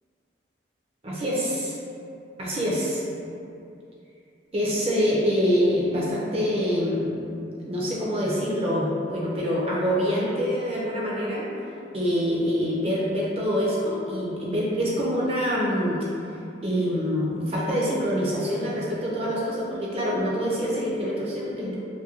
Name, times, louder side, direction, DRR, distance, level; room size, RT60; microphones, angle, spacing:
voice 1, 1.0-1.7 2.4-3.0 4.5-7.2 7.6-11.5 11.9-16.0 16.6-21.8, equal, 35° right, -6 dB, 0.5 m, -25 dB
2.6 x 2.6 x 2.8 m, 2.6 s
head